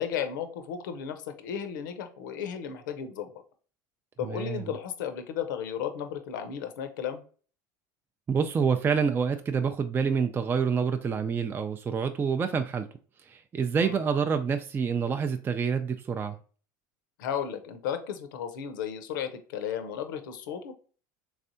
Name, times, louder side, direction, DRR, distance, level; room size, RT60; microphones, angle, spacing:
voice 1, 0.0-3.3 4.2-7.2 13.8-14.0 17.2-20.7, left 8 dB, 85° left, 8 dB, 0.6 m, -34 dB
voice 2, 4.2-4.7 8.3-12.9 13.3-16.4, right 6 dB, 20° right, 7 dB, 0.3 m, -27 dB
3.5 x 3.2 x 2.6 m, 0.40 s
supercardioid pair, 100°, 10 cm